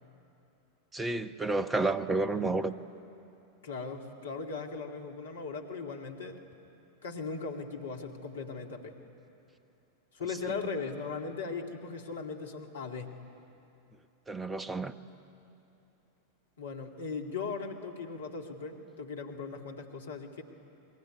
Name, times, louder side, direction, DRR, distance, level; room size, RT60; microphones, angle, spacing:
voice 1, 0.9-2.7 10.5-10.6 14.3-14.9, right 3 dB, 15° right, 1.1 m, -30 dB
voice 2, 3.6-6.4 7.0-9.0 10.1-13.2 16.6-20.4, left 4 dB, 65° left, 2.3 m, -38 dB
28.0 x 22.0 x 9.5 m
figure-of-eight pair, 90°, 0 cm